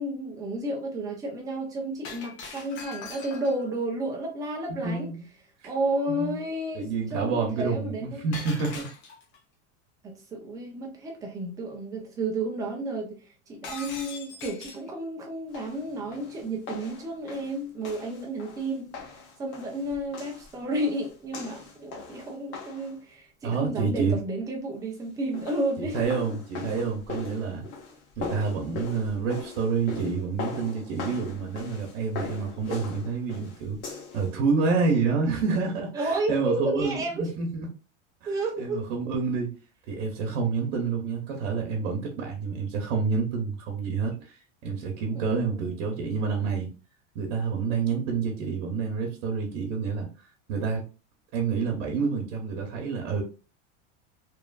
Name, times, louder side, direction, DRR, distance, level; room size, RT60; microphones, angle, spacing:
voice 1, 0.0-5.1 5.6-8.3 10.0-13.2 13.5-18.9 19.4-26.1 35.9-37.3 38.3-38.8 45.2-46.0, right 1 dB, 10° right, 0.3 m, -32 dB
Shatter, 2.0-3.7 8.3-9.4 13.6-14.9, left 4 dB, 65° left, 0.9 m, -41 dB
voice 2, 4.8-5.2 5.6-5.7 6.1-6.4 6.7-8.9 23.4-24.1 25.8-27.7 28.2-33.8 34.1-37.7 38.2-39.5 39.9-44.4 44.6-46.7 47.1-50.1 50.5-50.8 51.3-53.2, right 5 dB, 70° right, 0.9 m, -28 dB
sound 1, 15.5-23.0 25.2-34.3, left 5 dB, 30° left, 0.7 m, -40 dB
3.0 x 2.4 x 2.3 m
supercardioid pair, 165°, 36 cm